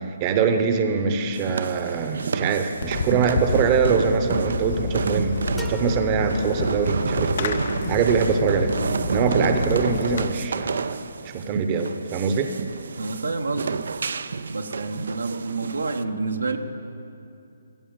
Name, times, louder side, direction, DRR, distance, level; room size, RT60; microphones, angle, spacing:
voice 1, 0.0-8.7 9.1-12.5, right 6 dB, 30° right, 7 dB, 0.8 m, -23 dB
sound 1, 1.3-16.0, right 5 dB, 65° right, 0.4 m, -30 dB
Fireworks, 2.8-10.3, left 4 dB, 50° left, 0.6 m, -29 dB
sound 2, 5.6-7.3, equal, 5° left, 0.8 m, -41 dB
voice 2, 13.0-13.8 14.5-16.6, right 3 dB, 80° right, 5 dB, 1.0 m, -28 dB
14.5 x 7.0 x 8.8 m, 2.7 s
figure-of-eight pair, 140°, 0 cm